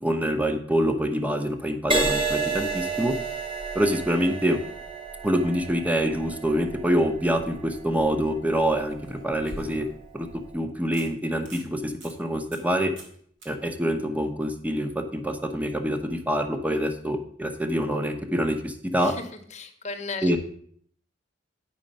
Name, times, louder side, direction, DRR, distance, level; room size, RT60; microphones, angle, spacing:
voice 1, 0.0-3.1 3.7-4.6 5.2-9.8 10.1-10.3 10.5-12.9 13.5-19.1 20.2-20.4, equal, 10° right, 6 dB, 0.7 m, -26 dB
Crash cymbal, 1.9-9.5 10.2-10.5, right 3 dB, 25° right, 1.4 m, -31 dB
sound 1, 8.8-10.1 10.5-10.6 10.9-11.1 11.4-11.7 12.0-12.1 12.5-12.7 13.0-13.2 13.4-13.5 16.6-16.7, right 1 dB, 70° right, 2.1 m, -43 dB
voice 2, 19.0-20.4, left 4 dB, 40° left, 5 dB, 0.9 m, -36 dB
8.8 x 5.1 x 5.2 m, 0.62 s
head